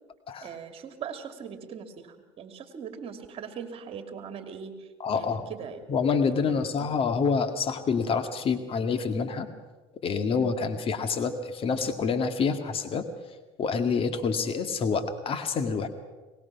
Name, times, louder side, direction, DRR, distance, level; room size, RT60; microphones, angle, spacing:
voice 1, 0.4-4.9 5.2-5.8 6.4-6.9 10.3-10.6, right 7 dB, 45° right, 7 dB, 2.7 m, -40 dB
voice 2, 5.0-5.5 5.9-9.5 10.0-13.0 13.6-15.9, left 5 dB, 45° left, 8 dB, 2.0 m, -27 dB
23.0 x 19.5 x 5.9 m, 1.2 s
supercardioid pair, 85°, 13 cm